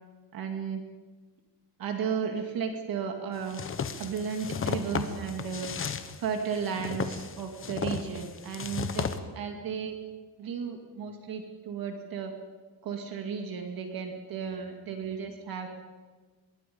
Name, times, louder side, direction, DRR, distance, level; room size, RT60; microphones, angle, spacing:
voice 1, 0.3-0.8 1.8-3.6 4.0-5.7 6.2-10.0 10.4-12.3 12.8-15.7, right 6 dB, 55° right, 4 dB, 2.4 m, -34 dB
sound 1, 3.5-9.2, left 6 dB, 30° left, 1.2 m, -34 dB
25.5 x 22.5 x 5.5 m, 1.4 s
cardioid pair, 170°, 42 cm